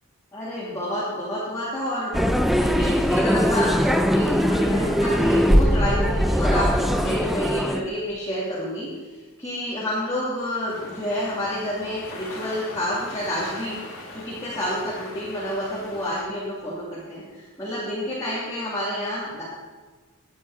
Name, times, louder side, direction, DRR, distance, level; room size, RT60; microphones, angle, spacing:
voice 1, 0.3-2.1 2.5-8.9 9.4-19.4, left 1 dB, 15° left, -9 dB, 3.0 m, -29 dB
sound 1, 2.1-7.8, equal, ahead, 0.6 m, -20 dB
sound 2, 10.7-16.2, left 1 dB, 70° left, 2.7 m, -40 dB
18.0 x 10.0 x 5.0 m, 1.3 s
head